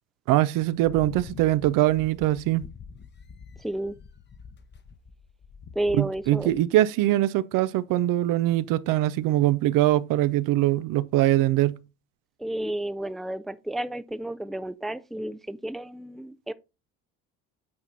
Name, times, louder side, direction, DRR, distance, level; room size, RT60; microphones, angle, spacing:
voice 1, 0.3-2.6 6.0-11.8, right 15 dB, 70° right, 0.6 m, -22 dB
sound 1, 0.6-6.6, left 6 dB, 30° left, 0.9 m, -46 dB
voice 2, 3.6-4.0 5.7-6.6 12.4-16.5, right 1 dB, ahead, 0.5 m, -31 dB
8.7 x 4.3 x 3.9 m
supercardioid pair, 80°, 34 cm